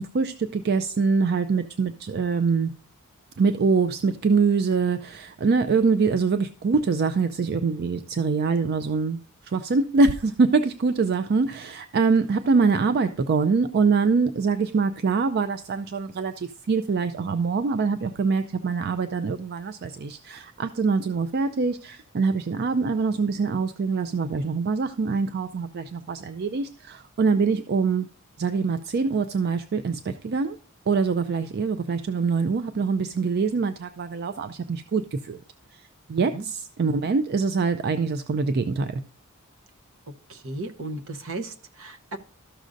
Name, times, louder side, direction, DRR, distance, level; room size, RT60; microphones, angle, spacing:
voice 1, 0.0-2.7 3.4-9.2 9.4-28.1 28.4-30.6 30.9-35.4 35.7-35.8 36.1-39.0, right 4 dB, 50° right, 0.4 m, -24 dB
voice 2, 40.3-42.2, right 2 dB, 65° right, 0.9 m, -35 dB
13.5 x 6.3 x 2.6 m
head